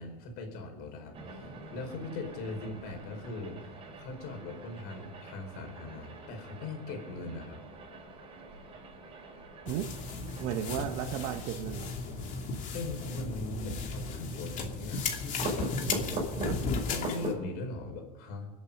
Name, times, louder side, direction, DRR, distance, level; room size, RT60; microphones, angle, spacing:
voice 1, 0.0-7.6 12.7-16.2 16.9-18.5, left 2 dB, 60° left, 4.7 m, -40 dB
sound 1, 1.1-17.5, right 1 dB, 30° right, 5.9 m, -43 dB
voice 2, 9.6-9.9 10.4-11.9 16.4-16.7, right 11 dB, 60° right, 1.0 m, -34 dB
sound 2, 9.7-17.3, left 4 dB, 40° left, 2.7 m, -35 dB
24.0 x 8.3 x 5.4 m
supercardioid pair, 105°, 19 cm